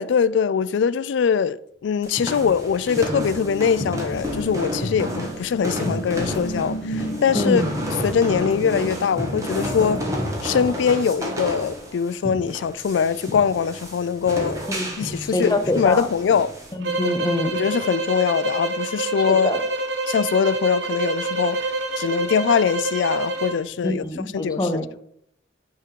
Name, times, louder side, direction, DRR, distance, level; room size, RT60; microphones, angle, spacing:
voice 1, 0.0-1.6 1.8-7.6 8.0-10.0 10.4-14.6 15.0-16.5 17.5-19.5 20.1-21.6 22.0-24.0 24.3-24.7, left 6 dB, 80° left, 0.3 m, -22 dB
sound 1, 2.0-16.7, equal, 15° right, 1.5 m, -30 dB
sound 2, 2.3-11.3, right 1 dB, 65° left, 1.0 m, -36 dB
voice 2, 7.3-7.7 14.7-14.9 15.3-16.1 16.7-17.5 19.3-19.6 23.8-25.0, left 1 dB, 20° left, 0.7 m, -24 dB
sound 3, 16.8-23.6, right 2 dB, 75° right, 0.9 m, -27 dB
9.0 x 3.7 x 4.6 m
head